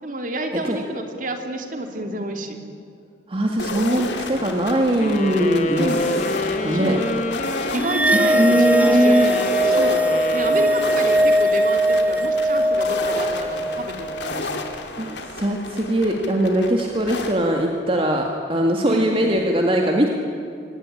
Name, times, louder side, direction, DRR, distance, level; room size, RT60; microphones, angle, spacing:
voice 1, 0.0-2.6 5.7-6.1 6.7-7.0 7.7-9.2 9.6-14.6 18.8-19.1, right 1 dB, 50° right, 5 dB, 2.9 m, -29 dB
voice 2, 3.3-5.9 6.6-7.0 8.1-9.3 15.0-20.1, right 1 dB, 30° right, 1 dB, 2.0 m, -21 dB
sound 1, 3.6-17.3, left 2 dB, 85° left, 2.8 m, -32 dB
sound 2, 5.0-11.5, left 2 dB, 45° left, 1.7 m, -28 dB
sound 3, 7.8-14.4, right 1 dB, 10° right, 1.0 m, -20 dB
25.0 x 18.5 x 10.0 m, 2.4 s
head